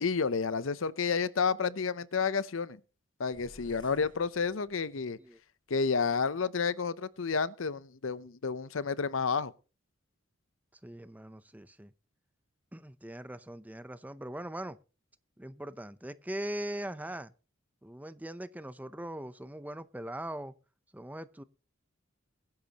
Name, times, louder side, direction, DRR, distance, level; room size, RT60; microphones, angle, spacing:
voice 1, 0.0-2.8 3.2-5.2 5.7-9.5, left 5 dB, 80° left, 0.7 m, -30 dB
sound 1, 3.3-5.2, left 1 dB, 25° left, 6.1 m, -56 dB
voice 2, 5.9-6.5 10.8-11.9 12.7-14.8 15.4-17.3 17.8-20.5 20.9-21.4, right 1 dB, 10° right, 0.6 m, -41 dB
22.0 x 10.5 x 2.9 m
head